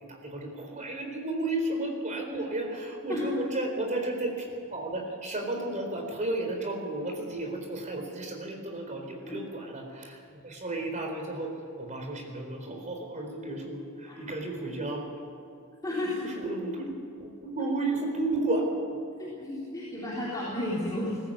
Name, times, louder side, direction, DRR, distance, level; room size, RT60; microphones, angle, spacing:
voice 1, 0.0-15.1 15.9-16.9 17.2-18.8, right 2 dB, 35° right, 2 dB, 4.1 m, -33 dB
voice 2, 15.8-16.2 19.2-21.2, left 1 dB, 15° left, -7 dB, 3.7 m, -32 dB
20.5 x 14.5 x 8.7 m, 2.5 s
head